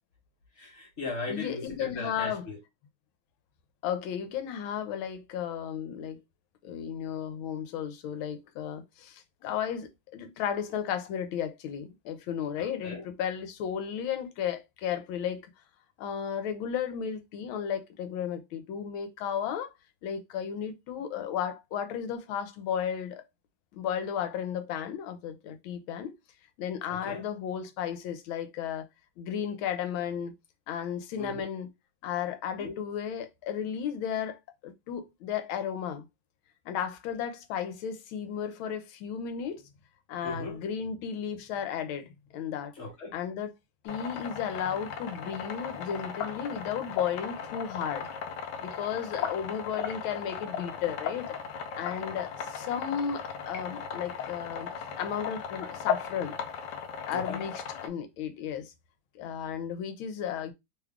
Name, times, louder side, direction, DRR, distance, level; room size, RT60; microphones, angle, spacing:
voice 1, 0.6-2.6 12.6-13.0 26.9-27.2 31.2-31.5 32.6-32.8 40.2-40.6 42.8-43.1 49.2-49.3 57.1-57.4, left 3 dB, 40° left, 1.2 m, -38 dB
voice 2, 1.3-2.5 3.8-6.2 6.6-15.5 16.0-19.7 20.0-23.2 23.7-26.1 26.6-28.9 29.2-30.3 30.7-31.7 32.0-36.1 36.7-39.6 40.1-42.7 43.1-43.5 43.8-48.1 48.6-51.4 51.8-54.7 55.0-56.3 57.1-58.7 59.1-60.5, left 8 dB, 85° left, 1.4 m, -34 dB
sound 1, 43.8-57.9, left 7 dB, 70° left, 1.1 m, -37 dB
3.4 x 2.3 x 3.5 m
omnidirectional pair, 2.2 m